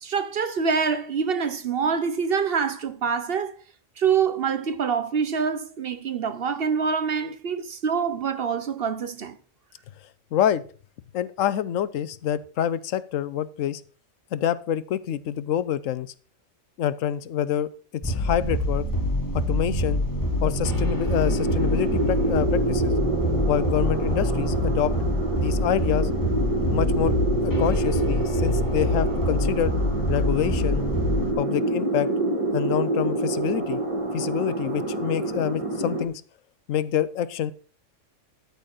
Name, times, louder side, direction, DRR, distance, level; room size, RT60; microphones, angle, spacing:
voice 1, 0.0-3.6 4.0-9.3, right 6 dB, 55° right, 1.0 m, -25 dB
voice 2, 10.3-10.6 11.1-13.8 14.3-16.1 16.8-17.7 18.0-18.9 19.3-20.0 20.4-23.0 23.5-24.9 25.4-26.1 26.7-27.1 27.4-29.7 30.1-30.8 31.4-32.1 32.5-33.8 34.1-36.2 36.7-37.5, left 10 dB, 85° left, 1.0 m, -26 dB
sound 1, 18.0-31.3, left 1 dB, 15° left, 1.3 m, -26 dB
sound 2, 20.1-36.1, right 2 dB, 25° right, 1.7 m, -27 dB
12.5 x 4.2 x 6.4 m
omnidirectional pair, 1.3 m